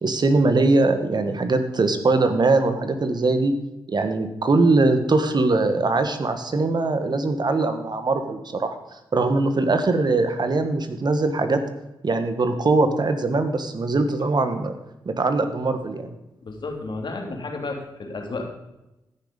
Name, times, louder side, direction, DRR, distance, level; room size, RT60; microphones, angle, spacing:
voice 1, 0.0-3.5 3.9-11.6 12.0-14.7 15.0-16.1, right 3 dB, 50° right, 8 dB, 1.4 m, -21 dB
voice 2, 16.4-18.4, left 3 dB, 55° left, 2 dB, 2.9 m, -32 dB
14.5 x 6.4 x 5.2 m, 0.94 s
supercardioid pair, 50°, 9 cm